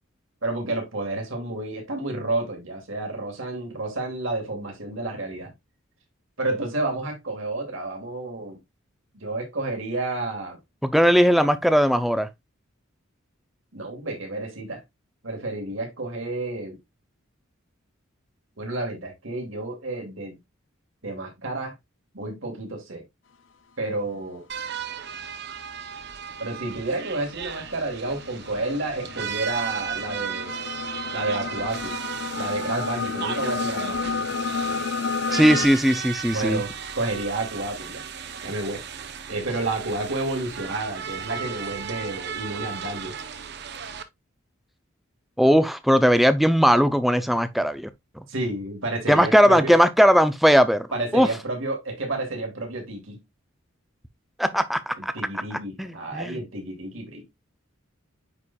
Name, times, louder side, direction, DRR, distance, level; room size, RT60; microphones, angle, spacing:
voice 1, 0.4-5.5 6.4-8.6 9.1-10.6 13.7-14.8 15.2-16.8 18.6-20.4 21.0-21.7 22.1-23.0 23.8-24.5 26.4-30.5 31.1-31.9 32.3-34.2 36.3-38.0 38.4-38.8 39.3-43.1 48.3-49.7 50.9-53.2 55.0-57.2, right 2 dB, 70° right, 2.5 m, -30 dB
voice 2, 10.8-12.3 35.3-36.6 45.4-47.9 49.1-50.9 51.1-51.3 54.4-55.1 55.5-56.4, equal, ahead, 0.5 m, -19 dB
sound 1, 24.5-44.0, right 7 dB, 55° right, 0.7 m, -35 dB
sound 2, 27.0-35.7, left 5 dB, 65° left, 0.6 m, -31 dB
9.6 x 4.3 x 2.3 m
head